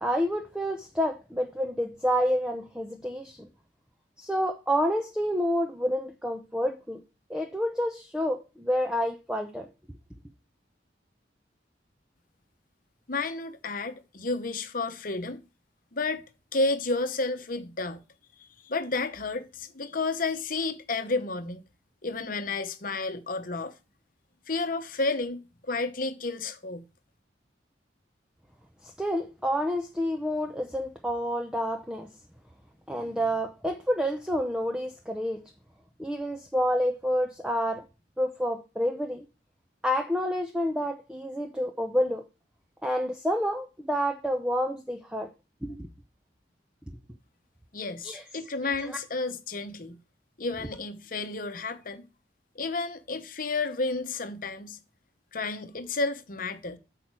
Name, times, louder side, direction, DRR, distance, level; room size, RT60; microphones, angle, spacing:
voice 1, 0.0-3.5 4.2-7.0 7.3-9.7 28.8-32.1 32.9-35.5 36.0-37.8 38.2-39.2 39.8-42.2 42.8-45.3 45.6-45.9 48.0-48.2 48.8-49.0, equal, 5° right, 0.6 m, -29 dB
voice 2, 13.1-15.4 15.9-16.2 16.5-18.0 18.4-21.6 22.0-23.7 24.5-26.8 47.7-50.0 50.4-52.1 52.5-54.8 55.3-56.8, left 3 dB, 50° left, 1.0 m, -31 dB
8.5 x 5.9 x 4.7 m
head